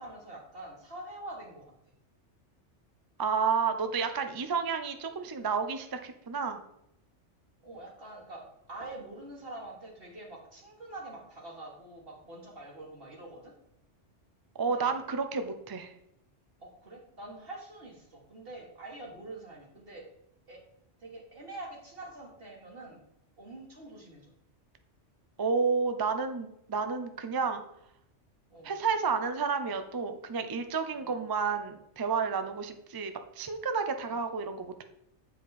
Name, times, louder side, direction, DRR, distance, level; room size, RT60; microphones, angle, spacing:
voice 1, 0.0-1.6 7.6-13.5 14.6-15.0 16.6-20.0 20.5-20.6 21.0-23.0 23.4-24.2 28.5-28.7 31.0-31.1 34.0-34.2, right 2 dB, 50° right, -2 dB, 1.7 m, -45 dB
voice 2, 3.2-6.6 14.6-15.9 25.4-27.6 28.6-34.8, right 5 dB, 35° right, 8 dB, 0.3 m, -31 dB
8.1 x 5.0 x 4.1 m, 0.79 s
omnidirectional pair, 1.2 m